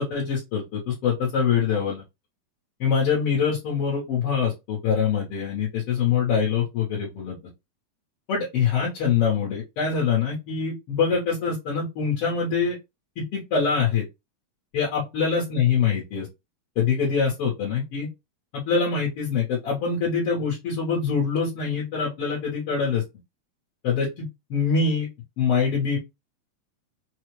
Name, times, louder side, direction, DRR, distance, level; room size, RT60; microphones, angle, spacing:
voice 1, 0.0-2.0 2.8-7.3 8.3-12.8 13.2-14.0 14.7-16.3 16.7-18.1 18.5-23.0 23.8-25.1 25.4-26.0, left 6 dB, 60° left, -5 dB, 1.7 m, -24 dB
5.4 x 2.4 x 3.1 m, 0.23 s
omnidirectional pair, 4.1 m